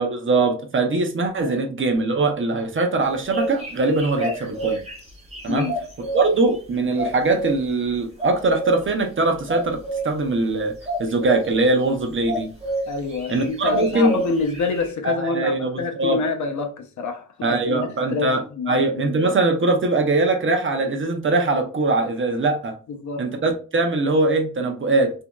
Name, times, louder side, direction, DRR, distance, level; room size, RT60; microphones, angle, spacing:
voice 1, 0.0-4.8 5.4-5.7 6.1-10.7 11.0-12.5 13.3-14.1 15.0-16.2 17.4-18.4 18.7-22.8 23.2-25.1, right 2 dB, 40° right, 0.6 m, -21 dB
sound 1, 3.0-6.2 7.0-7.6 8.2-8.7 9.5-10.0 10.8-11.5 12.3-12.8 13.1-14.9, right 2 dB, 20° right, 1.5 m, -28 dB
voice 2, 5.5-5.8 12.9-19.1 22.9-23.3, left 4 dB, 70° left, 0.6 m, -27 dB
2.8 x 2.7 x 2.2 m
wide cardioid pair, 105°, 30 cm